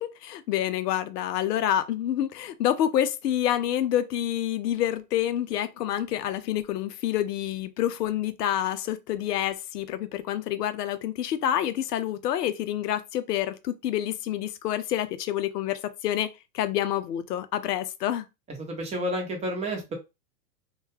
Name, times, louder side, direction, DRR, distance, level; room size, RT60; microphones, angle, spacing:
voice 1, 0.0-16.3 16.5-18.3, left 11 dB, 80° left, 0.6 m, -28 dB
voice 2, 18.6-19.9, equal, 15° right, 0.7 m, -30 dB
2.2 x 2.2 x 3.1 m
hypercardioid pair, 125°, 47 cm